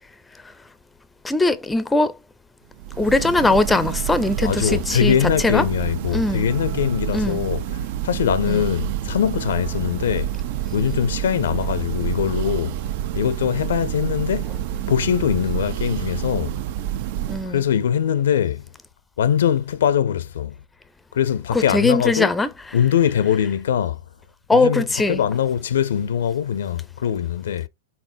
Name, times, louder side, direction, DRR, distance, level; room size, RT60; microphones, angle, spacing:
voice 1, 1.2-2.2 3.0-5.6 6.1-6.5 7.1-7.4 8.5-8.6 17.2-17.6 21.5-22.5 24.5-25.2, left 2 dB, 10° left, 0.5 m, -20 dB
Church bell, 2.7-17.7, right 12 dB, 60° right, 0.4 m, -28 dB
voice 2, 4.4-10.3 10.7-12.8 13.1-14.5 14.9-16.6 17.5-18.6 19.2-20.6 21.1-22.3 22.7-24.0 24.5-27.7, left 9 dB, 80° left, 0.5 m, -22 dB
4.3 x 3.6 x 2.6 m
hypercardioid pair, 120°, 0 cm